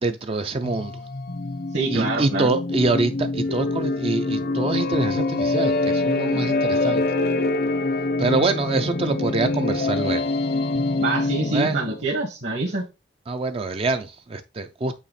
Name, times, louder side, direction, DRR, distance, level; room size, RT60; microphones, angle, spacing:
voice 1, 0.0-1.0 1.9-7.0 8.2-10.2 11.5-11.8 13.3-15.0, right 3 dB, 30° right, 0.5 m, -25 dB
sound 1, 0.6-12.0, left 2 dB, 55° left, 0.7 m, -25 dB
voice 2, 1.7-2.5 11.0-12.8, right 2 dB, 65° right, 1.9 m, -26 dB
8.5 x 3.0 x 4.2 m
head